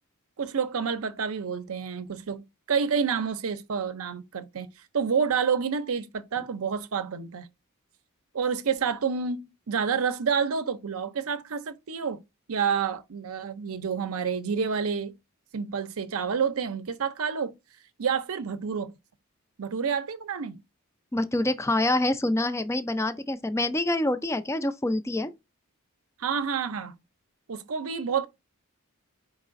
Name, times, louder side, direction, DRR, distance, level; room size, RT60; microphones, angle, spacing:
voice 1, 0.4-4.7 4.9-7.5 8.3-12.2 12.5-15.1 15.5-17.5 18.0-18.9 19.6-20.6 26.2-27.0 27.5-28.3, right 6 dB, 70° right, 0.6 m, -29 dB
voice 2, 21.1-25.3, left 1 dB, 15° left, 0.4 m, -26 dB
4.7 x 4.0 x 2.5 m
head